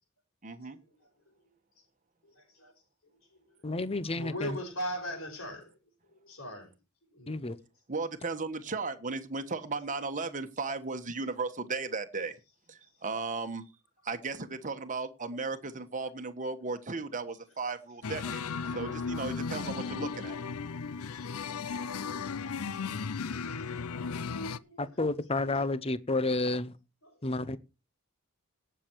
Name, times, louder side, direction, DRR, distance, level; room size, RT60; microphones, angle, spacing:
voice 1, 0.4-0.8 7.9-12.4 12.7-13.7 14.0-20.4, right 4 dB, 35° right, 1.3 m, -36 dB
voice 2, 2.2-2.7 4.1-5.8 6.1-6.7 7.1-7.3 18.7-18.8 24.1-24.8 27.0-27.1, equal, 70° left, 5.6 m, -39 dB
voice 3, 3.6-4.6 7.3-7.6 24.8-26.7 27.2-27.6, left 2 dB, 25° left, 0.8 m, -30 dB
sound 1, 18.0-24.6, left 5 dB, 90° left, 0.6 m, -35 dB
18.0 x 6.9 x 4.6 m
head